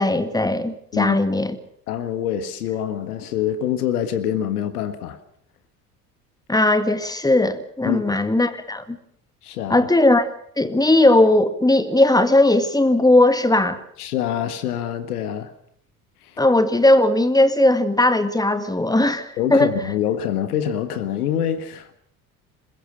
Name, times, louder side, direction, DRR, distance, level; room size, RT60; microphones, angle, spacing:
voice 1, 0.0-1.6 6.5-9.0 9.7-10.3 10.6-13.8 16.4-19.7, left 1 dB, 10° left, 1.9 m, -18 dB
voice 2, 1.9-5.2 7.8-8.1 9.4-9.9 14.0-15.5 19.4-22.0, left 10 dB, 70° left, 1.7 m, -25 dB
21.5 x 21.5 x 7.1 m
figure-of-eight pair, 60°, 47 cm